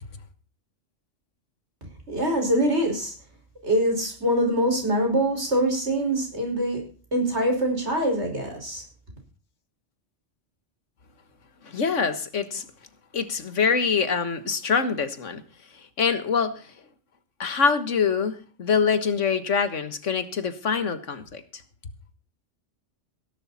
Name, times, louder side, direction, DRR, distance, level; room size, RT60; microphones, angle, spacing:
voice 1, 2.1-3.1 3.6-6.9 7.1-8.8, right 1 dB, 60° right, 5.8 m, -24 dB
voice 2, 11.6-12.7 13.1-15.4 16.0-16.7 17.4-21.4, left 6 dB, 75° left, 1.8 m, -24 dB
17.0 x 11.5 x 4.3 m
omnidirectional pair, 1.3 m